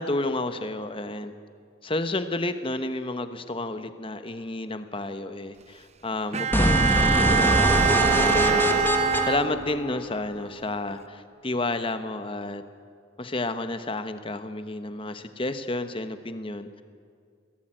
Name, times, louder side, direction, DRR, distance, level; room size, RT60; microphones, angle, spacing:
voice 1, 0.0-1.3 1.8-8.9 9.2-12.6 13.2-16.8, left 2 dB, 30° left, 10 dB, 1.2 m, -31 dB
Bowed string instrument, 6.3-10.0, right 7 dB, 35° right, 0.6 m, -24 dB
sound 1, 6.5-10.5, left 1 dB, 10° left, 1.4 m, -24 dB
22.5 x 17.5 x 8.9 m, 2.2 s
head